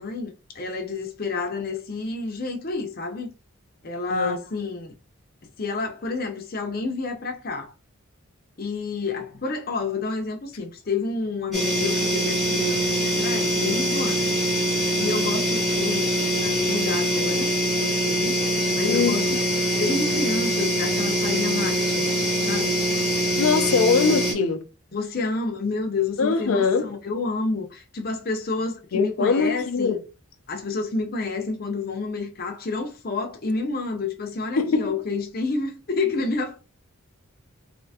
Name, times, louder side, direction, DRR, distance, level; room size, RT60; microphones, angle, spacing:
voice 1, 0.0-3.3 3.8-4.9 5.6-7.7 8.6-14.2 15.0-18.4 18.7-19.4 19.7-22.1 22.4-22.9 24.9-30.0 30.5-36.6, left 3 dB, 45° left, 0.6 m, -29 dB
sound 1, 11.5-24.3, right 1 dB, ahead, 1.0 m, -23 dB
voice 2, 18.8-19.2 23.4-24.7 26.2-26.9 28.9-30.0 34.6-35.0, left 5 dB, 80° left, 0.5 m, -22 dB
3.3 x 2.8 x 2.8 m
head